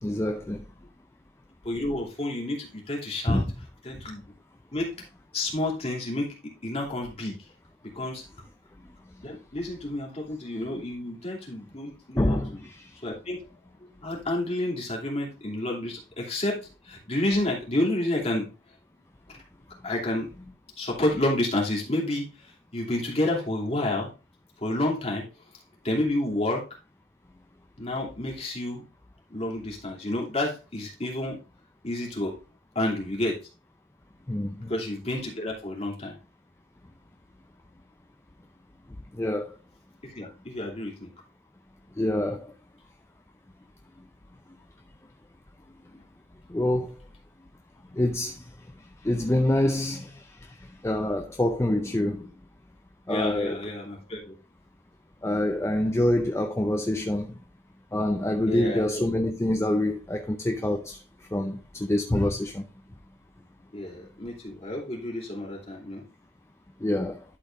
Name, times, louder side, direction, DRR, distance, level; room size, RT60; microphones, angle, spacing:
voice 1, 0.0-0.6 3.3-3.4 12.2-12.9 34.3-34.7 39.1-39.6 42.0-42.5 46.5-46.9 47.9-48.4 49.0-52.3 53.1-53.7 55.2-57.4 57.9-61.0 61.3-62.7 66.8-67.2, left 1 dB, 15° left, 0.5 m, -26 dB
voice 2, 1.6-3.4 3.8-4.2 4.7-4.9 5.3-6.3 6.6-7.4 7.9-8.2 9.2-12.6 13.0-13.4 14.0-16.6 16.8-18.5 19.8-20.3 20.8-22.2 22.7-24.1 24.6-25.2 25.8-26.6 27.8-28.9 29.3-31.4 31.8-32.3 32.7-33.4 34.7-36.2 40.0-41.1 53.1-54.4 58.4-59.0 63.7-66.0, left 1 dB, 35° left, 2.8 m, -30 dB
11.5 x 4.3 x 3.6 m
head